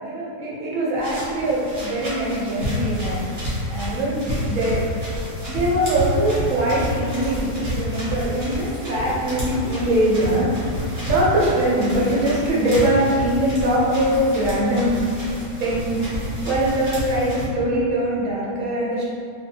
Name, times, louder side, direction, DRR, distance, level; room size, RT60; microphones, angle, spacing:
voice 1, 0.0-3.2 3.7-4.8 5.5-15.0 15.6-19.0, right 1 dB, 70° right, -6 dB, 1.0 m, -22 dB
sound 1, 1.0-17.5, equal, 45° right, 1.1 m, -29 dB
2.6 x 2.3 x 2.7 m, 2.4 s
omnidirectional pair, 1.4 m